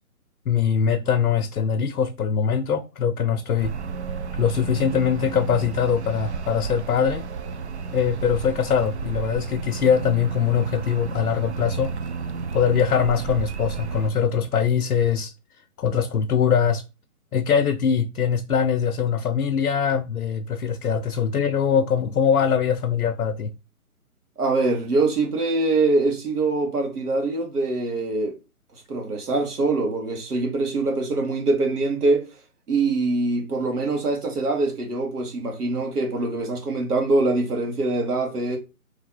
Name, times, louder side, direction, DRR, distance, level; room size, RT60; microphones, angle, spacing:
voice 1, 0.5-3.8 4.3-7.2 7.9-11.9 12.5-15.3 15.8-16.8 17.3-23.5, left 7 dB, 80° left, 0.6 m, -22 dB
sound 1, 3.6-14.1, right 5 dB, 50° right, 0.4 m, -32 dB
voice 2, 24.4-28.3 28.9-32.3 32.7-38.6, right 3 dB, 85° right, 1.8 m, -23 dB
3.2 x 2.8 x 4.0 m
hypercardioid pair, 160°, 45 cm